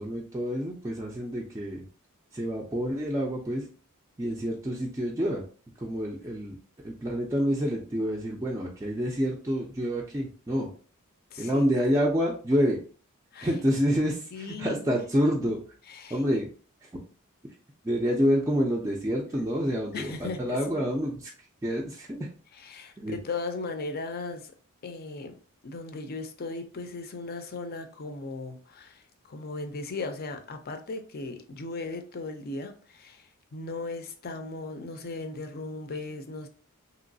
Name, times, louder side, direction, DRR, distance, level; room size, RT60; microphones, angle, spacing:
voice 1, 0.0-1.8 2.3-3.7 4.2-5.4 5.8-6.6 6.8-10.7 11.4-12.8 13.4-15.6 16.1-16.5 16.8-17.0 17.8-21.3 21.6-22.3 23.0-23.2, equal, 15° right, -3 dB, 0.4 m, -28 dB
voice 2, 11.3-11.7 13.3-13.5 14.3-15.0 15.9-16.2 19.9-20.8 22.6-24.5 24.8-36.5, left 3 dB, 45° left, 7 dB, 0.5 m, -37 dB
3.0 x 3.0 x 2.6 m, 0.41 s
head